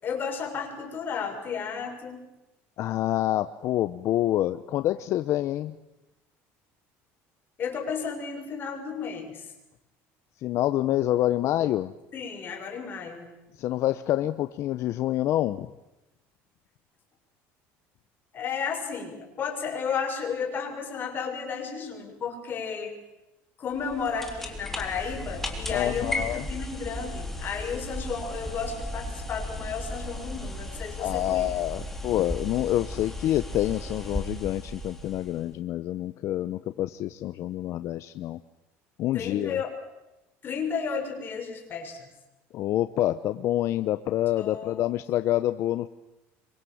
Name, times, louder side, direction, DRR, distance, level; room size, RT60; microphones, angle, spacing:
voice 1, 0.0-2.3 7.6-9.5 11.4-11.5 12.1-13.3 18.3-22.9 23.6-31.5 39.1-39.7 40.4-42.1 44.4-44.8, left 6 dB, 35° left, 2 dB, 6.4 m, -33 dB
voice 2, 2.8-5.7 10.4-11.9 13.6-15.7 25.7-26.5 31.0-38.4 39.0-39.6 42.5-45.9, left 13 dB, 55° left, 11 dB, 0.9 m, -27 dB
sound 1, 23.7-35.5, left 1 dB, 5° left, 3.7 m, -35 dB
26.0 x 24.0 x 8.0 m, 0.97 s
cardioid pair, 130°, 6 cm